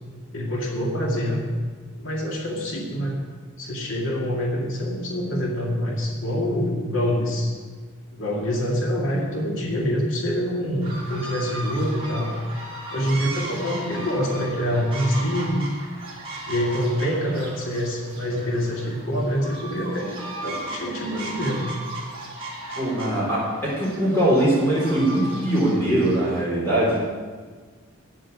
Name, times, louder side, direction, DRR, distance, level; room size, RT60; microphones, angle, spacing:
voice 1, 0.3-1.5 2.0-3.1 3.6-7.5 8.1-12.3 12.9-15.7 16.5-20.2 20.4-21.7, equal, 65° left, -2 dB, 2.2 m, -25 dB
sound 1, 10.8-26.4, right 1 dB, 25° right, 3.0 m, -37 dB
voice 2, 22.8-27.0, right 1 dB, 10° left, -8 dB, 3.9 m, -21 dB
10.0 x 7.8 x 8.4 m, 1.5 s
head